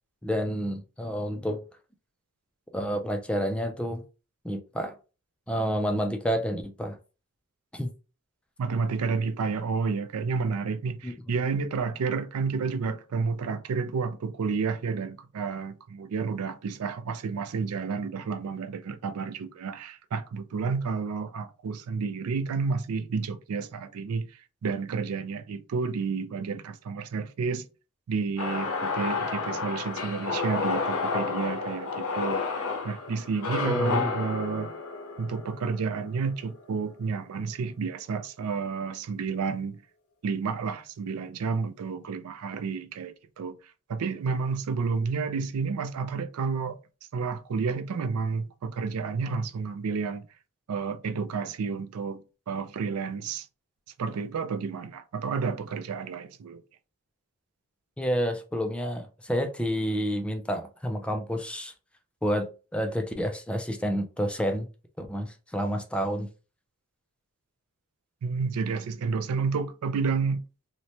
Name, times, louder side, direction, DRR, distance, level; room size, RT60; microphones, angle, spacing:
voice 1, 0.2-1.6 2.7-4.0 4.4-4.9 5.5-7.0 7.7-7.9 11.0-11.1 33.6-34.2 58.0-61.7 62.2-64.7 65.0-66.3, equal, 5° left, 0.3 m, -29 dB
voice 2, 8.6-24.3 24.6-27.6 28.1-32.4 32.8-34.7 35.2-39.8 40.2-43.6 43.9-46.8 47.1-50.3 50.7-53.5 54.0-56.6 68.2-70.4, right 5 dB, 70° right, 0.4 m, -30 dB
sound 1, 28.4-36.5, left 4 dB, 70° left, 0.6 m, -31 dB
3.0 x 2.1 x 2.7 m
head